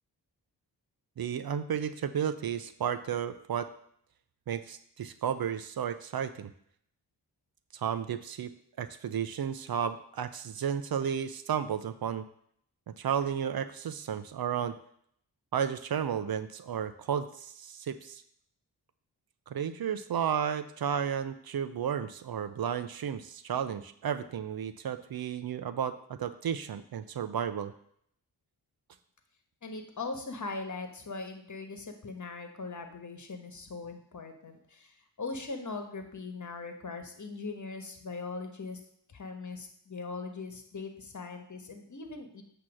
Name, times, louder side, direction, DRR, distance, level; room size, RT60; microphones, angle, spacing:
voice 1, 1.2-3.7 4.5-6.5 7.7-8.5 8.8-12.2 13.0-14.7 15.5-18.2 19.5-27.7, right 8 dB, 55° right, 12 dB, 0.6 m, -33 dB
voice 2, 29.6-38.8 39.1-42.4, left 3 dB, 45° left, 5 dB, 1.3 m, -40 dB
8.4 x 3.0 x 6.2 m, 0.67 s
cardioid pair, 45°, 43 cm